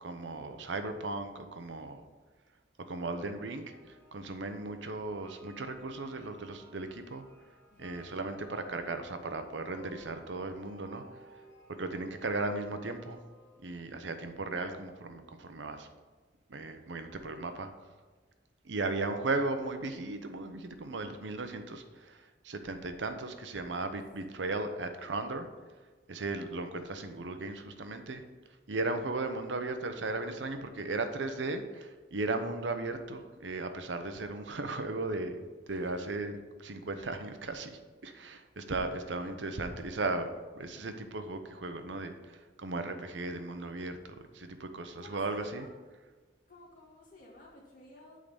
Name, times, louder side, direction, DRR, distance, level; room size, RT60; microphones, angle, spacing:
voice 1, 0.0-2.0 2.9-7.2 7.8-11.0 11.7-13.2 13.6-15.9 16.5-17.7 18.6-25.5 26.1-28.2 28.7-35.4 35.7-37.7 38.0-44.0 44.3-45.7, right 2 dB, 85° right, 8 dB, 0.8 m, -36 dB
sound 1, 3.7-13.6, equal, 10° left, 2.6 m, -57 dB
voice 2, 7.7-8.2 24.4-24.5 35.7-36.2 45.0-45.7 46.5-48.2, left 1 dB, 45° left, -4 dB, 2.3 m, -55 dB
8.5 x 3.8 x 7.0 m, 1.4 s
head